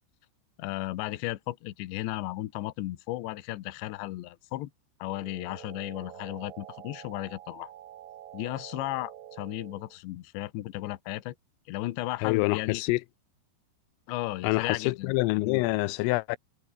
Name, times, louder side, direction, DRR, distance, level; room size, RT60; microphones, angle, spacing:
voice 1, 0.6-4.7 5.0-7.7 8.3-11.3 11.7-12.8 14.1-15.6, left 17 dB, 70° left, 3.2 m, -35 dB
sound 1, 5.0-10.0, right 12 dB, 65° right, 2.3 m, -47 dB
voice 2, 12.2-13.0 14.4-16.4, left 22 dB, 90° left, 3.3 m, -26 dB
omnidirectional pair, 5.8 m